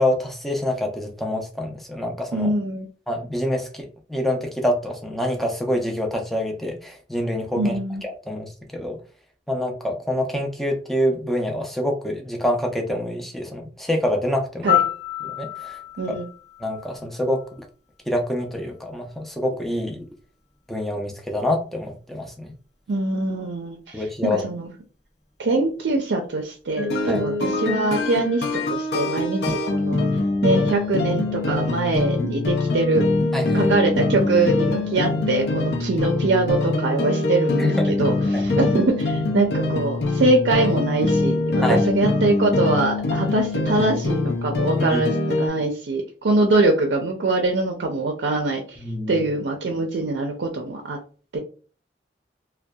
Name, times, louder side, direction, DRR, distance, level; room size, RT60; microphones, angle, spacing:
voice 1, 0.0-2.5 3.1-7.7 8.0-9.0 9.5-14.8 15.2-15.8 16.1-16.2 16.6-17.4 18.1-20.1 20.7-22.5 23.9-24.4 27.1-27.2 33.3-33.7 37.6-38.0 38.3-38.6 41.6-41.8 44.8-45.0 48.8-49.2, left 1 dB, ahead, 2 dB, 0.4 m, -26 dB
voice 2, 2.3-2.9 7.6-8.0 14.6-14.8 16.0-16.3 22.9-24.7 25.4-29.4 29.7-30.1 30.4-33.1 33.5-48.8 49.1-51.0 51.3-51.4, right 2 dB, 85° right, 2 dB, 0.5 m, -23 dB
Piano, 14.7-17.6 25.8-26.0, left 13 dB, 40° left, 0.8 m, -27 dB
sound 1, 26.8-45.5, left 2 dB, 70° left, 0.5 m, -23 dB
2.6 x 2.2 x 2.2 m, 0.38 s
head